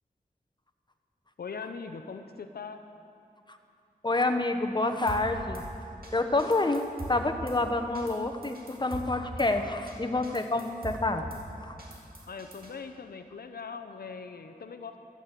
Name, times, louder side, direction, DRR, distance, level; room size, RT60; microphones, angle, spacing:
voice 1, 1.4-2.9 12.3-15.0, left 5 dB, 90° left, 7 dB, 0.6 m, -41 dB
voice 2, 4.0-5.7 6.1-11.2 11.6-11.8, left 2 dB, 30° left, 6 dB, 1.0 m, -28 dB
Drum kit / Snare drum, 5.1-5.6 6.0-6.1 6.4-7.6 7.9-8.2 8.4-9.5 9.9-10.0 10.2-11.4 11.8-12.7, right 1 dB, 75° right, 2.2 m, -41 dB
14.0 x 8.4 x 7.5 m, 2.7 s
wide cardioid pair, 45°, 15 cm